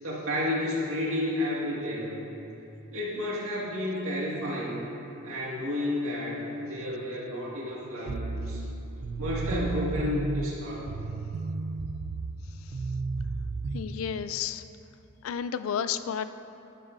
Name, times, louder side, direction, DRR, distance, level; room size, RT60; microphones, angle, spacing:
voice 1, 0.0-2.2 2.9-4.8 5.2-8.6 9.2-10.9, left 1 dB, 90° right, -5 dB, 2.0 m, -31 dB
sound 1, 8.1-13.8, right 3 dB, 50° right, 0.4 m, -33 dB
voice 2, 13.7-14.6 15.2-16.3, left 8 dB, 80° left, 12 dB, 0.3 m, -31 dB
10.5 x 9.9 x 2.7 m, 2.9 s
head